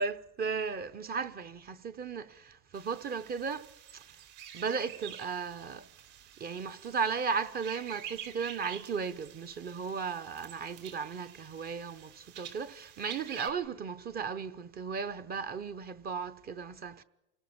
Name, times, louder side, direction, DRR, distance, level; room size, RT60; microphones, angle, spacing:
voice 1, 0.0-3.7 3.9-4.0 4.5-5.9 6.4-17.0, right 5 dB, 25° right, 0.9 m, -35 dB
sound 1, 2.7-13.5, right 9 dB, 60° right, 4.2 m, -48 dB
28.0 x 19.0 x 7.1 m
supercardioid pair, 135°, 38 cm